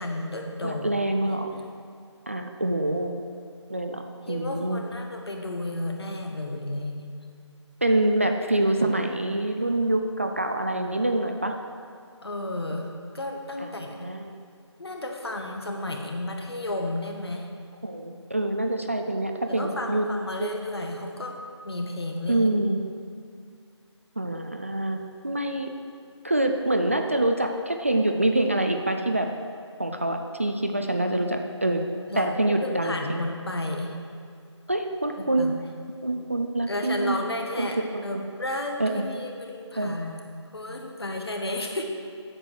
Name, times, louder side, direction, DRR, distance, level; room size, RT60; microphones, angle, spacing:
voice 1, 0.0-0.9 1.2-1.4 4.2-7.1 12.2-12.9 13.1-14.1 14.8-17.5 19.5-21.4 21.6-22.5 32.1-34.0 35.2-35.7 36.7-41.8, left 1 dB, 60° left, 2 dB, 1.4 m, -32 dB
voice 2, 0.6-1.5 2.3-3.1 3.7-4.8 7.8-11.5 13.6-13.7 14.0-14.4 17.8-20.1 20.4-20.5 22.3-22.8 24.2-25.7 26.2-29.3 29.8-31.8 32.1-33.2 34.7-35.5 36.0-37.2 37.6-38.2 38.8-39.0 39.8-39.9, right 1 dB, 25° right, 4 dB, 0.4 m, -26 dB
8.5 x 7.7 x 6.2 m, 2.3 s
figure-of-eight pair, 165°, 15 cm